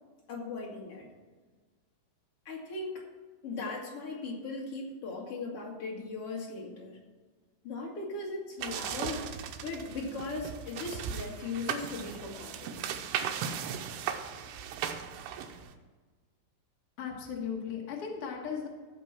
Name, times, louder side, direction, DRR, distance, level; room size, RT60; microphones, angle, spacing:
voice 1, 0.3-1.1 2.5-3.0 3.4-7.0 7.6-9.2 9.6-12.8, left 3 dB, 40° left, -2 dB, 2.4 m, -38 dB
sound 1, 8.6-15.7, right 8 dB, 80° right, 2.7 m, -37 dB
voice 2, 17.0-18.7, left 7 dB, 85° left, 0 dB, 1.2 m, -36 dB
15.5 x 5.3 x 5.9 m, 1.4 s
omnidirectional pair, 4.9 m